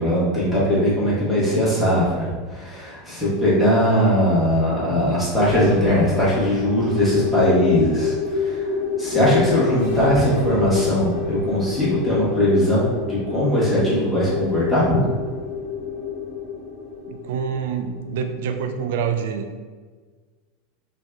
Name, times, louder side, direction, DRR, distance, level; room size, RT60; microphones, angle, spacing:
voice 1, 0.0-8.7 9.0-15.0, equal, ahead, -10 dB, 1.1 m, -20 dB
sound 1, 5.3-18.9, left 6 dB, 90° left, 1.2 m, -27 dB
voice 2, 17.1-19.6, right 7 dB, 75° right, 7 dB, 0.3 m, -26 dB
2.6 x 2.2 x 3.5 m, 1.4 s
hypercardioid pair, 110°, 0 cm